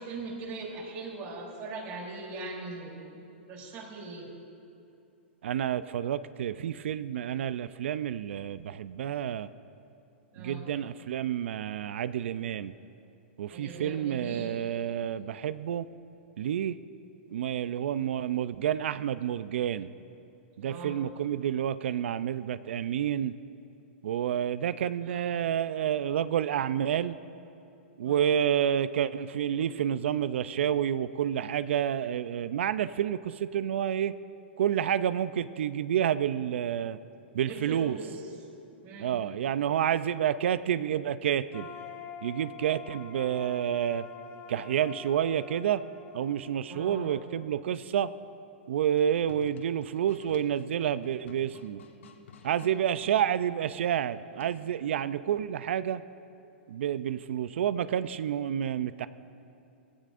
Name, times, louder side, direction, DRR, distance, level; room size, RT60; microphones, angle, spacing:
voice 1, 0.0-3.2 3.5-4.3 10.3-10.7 13.5-14.6 20.6-20.9 25.0-25.4 28.0-28.3 37.5-38.3 38.8-39.2 46.7-47.1, right 3 dB, 40° right, -3 dB, 3.2 m, -40 dB
voice 2, 5.4-9.5 10.4-12.7 13.4-15.9 16.4-16.7 17.3-19.9 20.6-23.3 24.0-27.2 28.0-34.1 34.6-37.0 37.3-38.0 39.0-41.7 42.2-44.1 44.5-45.8 46.1-48.1 48.7-51.8 52.4-56.0 56.7-59.1, right 9 dB, 70° right, 15 dB, 0.4 m, -29 dB
sound 1, 41.5-47.4, left 7 dB, 35° left, 1.8 m, -46 dB
sound 2, 48.9-53.2 54.4-54.8, left 4 dB, 80° left, 1.3 m, -52 dB
17.5 x 16.0 x 2.5 m, 2.7 s
hypercardioid pair, 130°, 7 cm